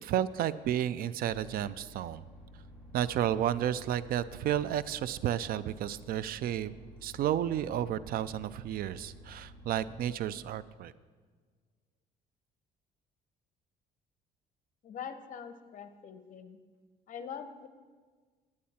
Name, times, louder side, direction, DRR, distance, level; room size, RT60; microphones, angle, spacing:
voice 1, 0.0-2.2 2.9-6.7 7.0-10.9, right 11 dB, 60° right, 17 dB, 0.4 m, -32 dB
sound 1, 1.3-10.0, equal, ahead, 2.0 m, -52 dB
voice 2, 14.8-16.6 17.1-17.7, left 7 dB, 50° left, 10 dB, 0.8 m, -43 dB
10.0 x 9.5 x 4.2 m, 1.5 s
cardioid pair, 110°, 17 cm